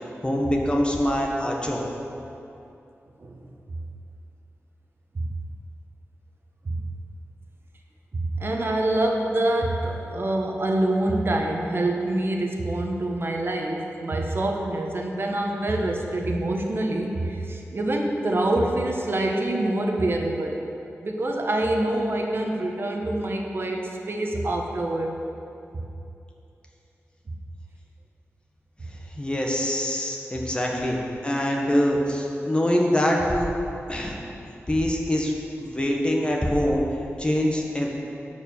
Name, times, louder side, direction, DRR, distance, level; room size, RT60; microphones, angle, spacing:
voice 1, 0.2-1.8 29.2-33.5 33.9-34.2 34.7-36.8 37.2-37.9, equal, 20° left, -1 dB, 1.4 m, -24 dB
voice 2, 8.1-20.6 21.0-25.2 25.7-25.8, right 1 dB, 50° right, 1 dB, 1.1 m, -26 dB
11.0 x 4.8 x 7.1 m, 2.7 s
wide cardioid pair, 90°, 5 cm